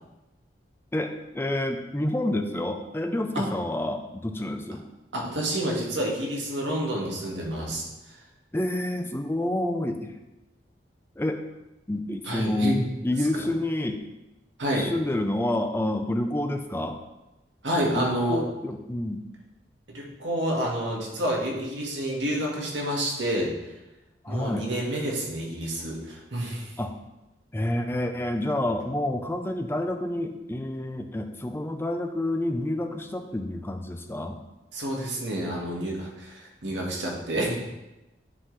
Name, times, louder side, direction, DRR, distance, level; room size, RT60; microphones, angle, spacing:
voice 1, 0.9-4.8 8.5-10.2 11.2-11.4 11.9-12.8 13.0-14.0 14.8-17.0 17.9-19.2 24.2-24.7 26.8-26.9 27.5-34.4, left 1 dB, 15° left, 5 dB, 0.4 m, -28 dB
voice 2, 5.1-8.2 12.2-12.8 13.2-13.4 14.6-14.9 17.6-18.4 19.9-23.8 24.3-26.8 34.7-37.6, right 1 dB, 85° right, -1 dB, 1.5 m, -29 dB
9.8 x 3.8 x 3.2 m, 0.98 s
head